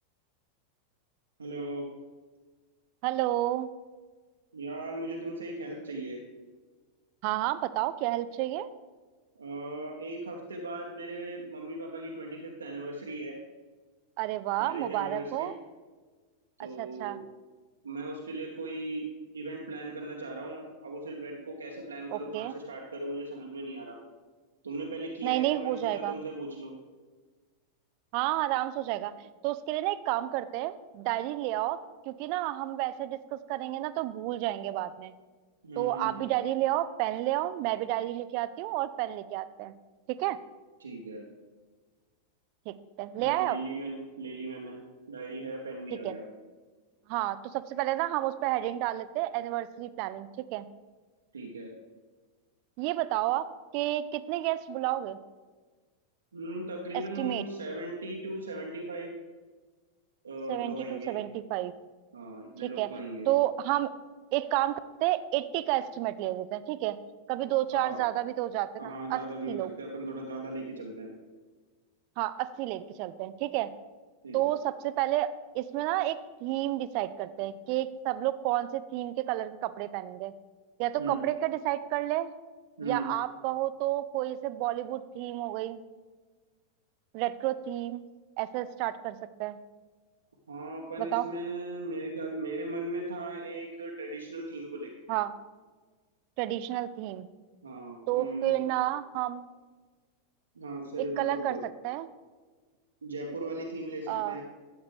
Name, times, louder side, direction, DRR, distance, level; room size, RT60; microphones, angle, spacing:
voice 1, 1.4-1.9 4.5-6.2 9.4-13.4 14.6-15.5 16.6-17.2 17.8-19.0 19.3-24.0 24.6-26.7 35.6-36.3 40.8-41.2 43.1-44.8 45.1-46.2 51.3-51.7 56.3-59.1 60.2-61.2 62.1-63.3 67.7-68.0 68.8-71.1 74.2-74.5 81.0-81.2 82.8-83.1 90.5-94.9 97.6-98.6 100.5-101.6 103.0-104.5, right 2 dB, 75° right, -1 dB, 1.1 m, -38 dB
voice 2, 3.0-3.7 7.2-8.7 14.2-15.5 16.8-17.2 22.1-22.5 25.2-26.1 28.1-29.1 29.4-31.8 32.1-35.1 35.8-39.7 40.1-40.4 42.7-43.6 45.9-46.1 47.1-50.6 52.8-53.5 53.7-55.2 56.9-57.4 60.5-61.7 62.6-62.9 63.3-63.9 64.3-67.0 67.3-69.2 69.5-69.7 72.2-73.7 74.3-75.3 75.5-80.3 80.8-82.3 82.8-85.8 87.1-88.1 88.4-89.6 91.0-91.2 95.1-95.3 96.4-97.3 98.1-99.5 101.2-101.6 101.8-102.1 104.1-104.4, right 15 dB, 45° right, 14 dB, 0.5 m, -30 dB
13.0 x 8.0 x 3.4 m, 1.4 s
figure-of-eight pair, 90°, 0 cm